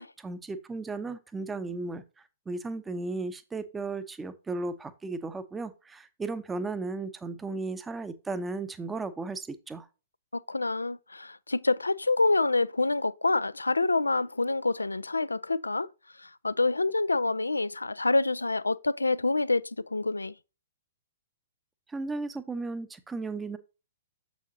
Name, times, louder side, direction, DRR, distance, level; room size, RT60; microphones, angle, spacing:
voice 1, 0.2-9.9 21.9-23.6, right 3 dB, 10° right, 0.7 m, -35 dB
voice 2, 10.3-15.9 16.2-20.3, left 3 dB, 80° left, 0.4 m, -27 dB
7.2 x 6.2 x 2.7 m
figure-of-eight pair, 115°, 0 cm